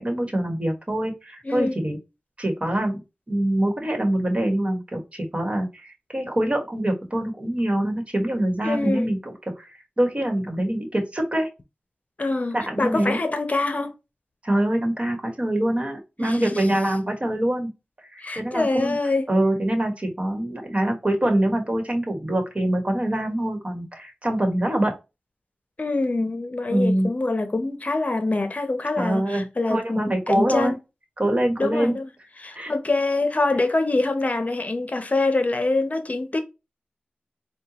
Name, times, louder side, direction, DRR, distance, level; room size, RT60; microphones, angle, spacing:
voice 1, 0.0-2.0 2.4-3.0 3.3-9.7 10.0-11.5 12.5-13.2 14.4-17.7 18.1-19.0 19.3-25.0 26.7-27.1 29.0-30.8 31.2-32.0 32.5-32.7, right 1 dB, 35° right, 1.4 m, -24 dB
voice 2, 1.4-1.8 8.6-9.1 12.2-13.9 16.2-16.6 18.2-19.3 25.8-30.7 31.6-32.1 32.4-36.4, left 2 dB, 45° left, 0.7 m, -25 dB
4.4 x 2.3 x 2.9 m
wide cardioid pair, 55°, 3 cm